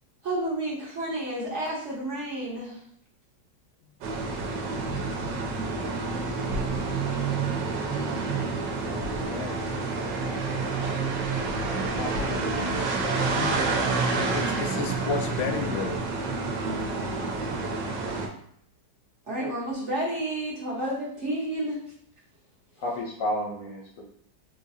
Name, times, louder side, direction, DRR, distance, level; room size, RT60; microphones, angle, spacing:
voice 1, 0.2-2.8 16.6-17.3 19.3-21.8, right 1 dB, 50° right, -5 dB, 0.9 m, -31 dB
sound 1, 4.0-18.3, right 3 dB, 75° right, 1.3 m, -28 dB
voice 2, 8.8-9.6 13.3-13.5 14.2-16.0, left 5 dB, 80° left, 5 dB, 1.2 m, -32 dB
voice 3, 11.8-12.4 22.8-24.0, left 1 dB, 65° left, -3 dB, 0.9 m, -32 dB
3.9 x 2.7 x 2.6 m, 0.67 s
omnidirectional pair, 2.0 m